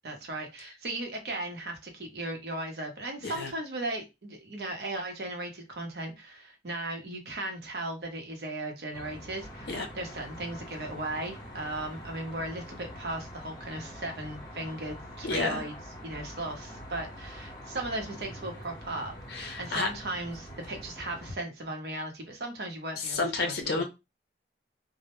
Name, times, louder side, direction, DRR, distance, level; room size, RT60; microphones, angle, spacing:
voice 1, 0.0-15.7 16.0-23.8, right 2 dB, 60° right, 0.7 m, -37 dB
Traffic noise roadway noise, 8.9-21.3, equal, 25° left, 0.8 m, -45 dB
voice 2, 15.2-15.6 19.3-19.9 23.0-23.8, left 3 dB, 60° left, 0.5 m, -30 dB
2.1 x 2.0 x 2.9 m
head